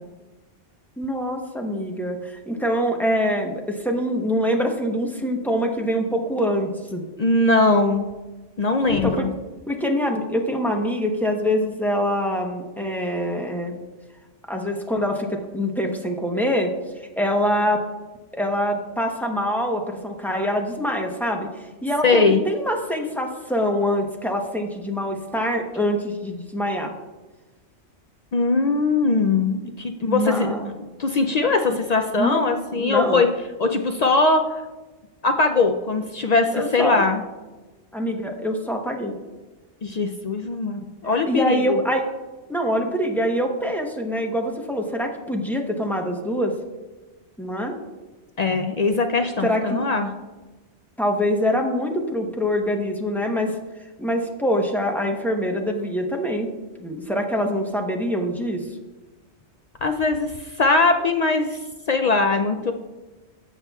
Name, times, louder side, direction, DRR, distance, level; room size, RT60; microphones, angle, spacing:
voice 1, 1.0-7.0 8.9-9.3 9.7-13.8 14.5-16.7 17.2-17.8 18.3-21.5 21.8-26.9 30.1-30.7 32.2-32.4 32.8-33.2 36.5-37.0 37.9-39.1 41.3-42.0 42.5-46.5 47.4-47.7 49.4-49.9 51.0-53.6 54.0-56.5 56.8-58.7, equal, ahead, 2 dB, 0.7 m, -24 dB
voice 2, 7.2-8.1 8.6-9.3 22.0-22.4 28.3-30.6 31.0-33.3 33.6-34.5 35.2-37.2 39.8-41.8 48.4-50.1 59.8-61.6 61.9-62.7, left 3 dB, 60° left, 5 dB, 0.4 m, -21 dB
15.0 x 5.7 x 2.3 m, 1.2 s
omnidirectional pair, 1.2 m